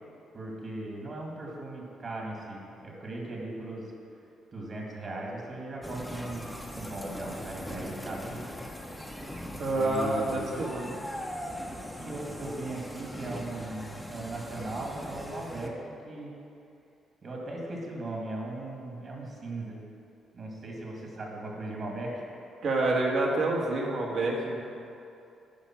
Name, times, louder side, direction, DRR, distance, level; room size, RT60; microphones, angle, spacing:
voice 1, 0.3-3.9 4.5-8.4 9.7-10.6 12.0-16.3 17.2-19.8 20.3-22.1, right 2 dB, 45° right, -2 dB, 2.1 m, -38 dB
sound 1, 5.8-15.7, equal, 5° left, 0.9 m, -40 dB
voice 2, 9.6-10.9 22.6-24.6, right 2 dB, 65° right, -2 dB, 1.6 m, -28 dB
9.8 x 5.0 x 6.1 m, 2.6 s
cardioid pair, 90°, 0 cm